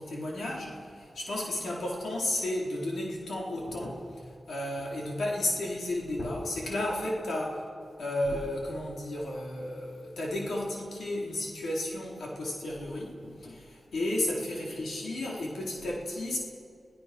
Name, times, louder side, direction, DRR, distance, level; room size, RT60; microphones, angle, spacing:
voice 1, 0.0-7.6 8.0-16.4, left 1 dB, 85° left, -2 dB, 4.2 m, -33 dB
26.0 x 17.0 x 6.2 m, 2.3 s
cardioid pair, 45°, 0 cm